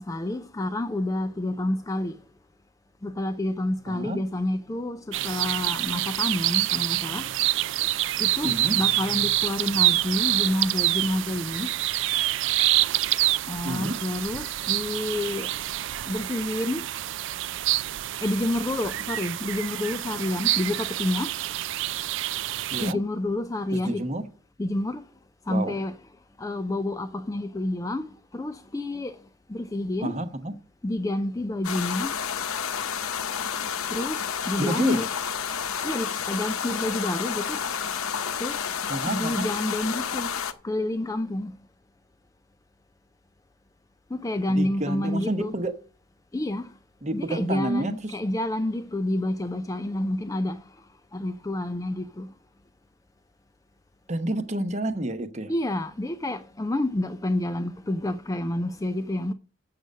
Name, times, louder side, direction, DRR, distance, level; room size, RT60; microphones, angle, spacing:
voice 1, 0.0-2.2 3.0-7.3 8.2-11.7 13.5-15.5 16.1-16.9 18.2-21.3 22.8-24.0 24.6-25.0 25.5-26.0 26.4-29.2 29.5-30.2 30.8-32.2 33.9-35.1 35.8-37.6 38.4-38.7 39.1-40.3 40.6-41.5 44.1-45.6 46.3-46.7 47.1-50.6 51.1-52.3 55.5-59.3, left 1 dB, 15° left, 0.4 m, -29 dB
voice 2, 3.9-4.2 8.4-8.8 13.6-14.0 22.7-23.0 23.7-24.3 25.5-25.8 30.0-30.5 34.6-35.0 38.9-39.5 44.5-45.8 47.0-48.2 54.1-55.5, right 1 dB, 35° right, 0.9 m, -29 dB
sound 1, 5.1-22.9, right 15 dB, 65° right, 0.4 m, -27 dB
sound 2, 31.6-40.5, left 7 dB, 90° left, 0.8 m, -30 dB
7.7 x 6.7 x 6.3 m
head